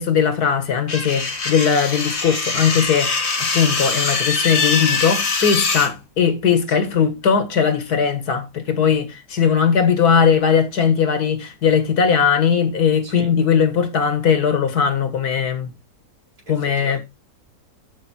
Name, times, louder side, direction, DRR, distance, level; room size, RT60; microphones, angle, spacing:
voice 1, 0.0-15.7 16.5-17.0, left 7 dB, 85° left, 2.0 m, -19 dB
sound 1, 0.9-5.9, left 4 dB, 45° left, 1.9 m, -22 dB
voice 2, 6.7-7.1 13.0-13.3 16.5-17.0, right 2 dB, 80° right, 5.4 m, -39 dB
12.5 x 4.6 x 4.3 m
omnidirectional pair, 1.6 m